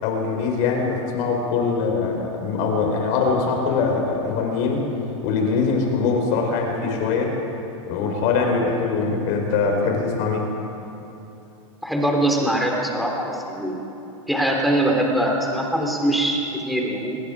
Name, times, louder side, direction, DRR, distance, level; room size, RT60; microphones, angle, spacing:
voice 1, 0.0-4.8 5.2-7.4 7.8-10.5, left 4 dB, 45° left, 2 dB, 4.8 m, -22 dB
voice 2, 11.8-13.8 14.3-17.2, right 1 dB, ahead, -1 dB, 3.7 m, -22 dB
28.5 x 21.0 x 5.1 m, 2.9 s
hypercardioid pair, 130°, 17 cm